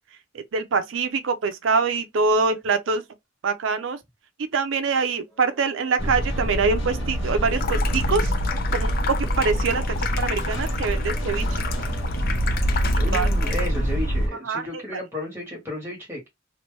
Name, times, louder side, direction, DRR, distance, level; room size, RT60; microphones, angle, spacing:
voice 1, 0.3-3.0 3.4-4.0 4.4-8.3 8.7-11.6 13.1-13.5 14.4-15.0, right 4 dB, 75° right, 0.5 m, -25 dB
sound 1, 5.2-14.6, equal, 5° left, 1.8 m, -48 dB
sound 2, 6.0-14.3, equal, 70° left, 1.1 m, -25 dB
Water tap faucet / Sink (filling or washing), 7.5-14.0, left 6 dB, 50° left, 0.4 m, -32 dB
voice 2, 13.0-16.3, left 1 dB, 10° right, 1.5 m, -33 dB
2.9 x 2.6 x 3.1 m
head